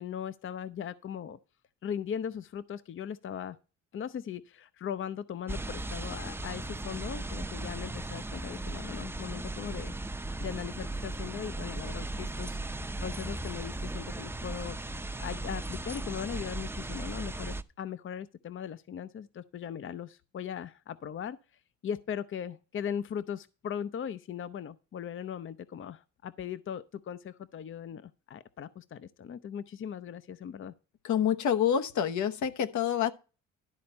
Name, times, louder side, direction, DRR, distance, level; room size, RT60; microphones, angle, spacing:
voice 1, 0.0-1.4 1.8-3.6 3.9-9.9 10.4-12.8 13.0-21.4 21.8-30.7, left 8 dB, 45° left, 0.6 m, -39 dB
sound 1, 5.5-17.6, right 2 dB, 10° right, 0.6 m, -37 dB
voice 2, 31.0-33.1, left 9 dB, 75° left, 1.0 m, -27 dB
12.0 x 4.3 x 7.0 m
cardioid pair, 90°, 30 cm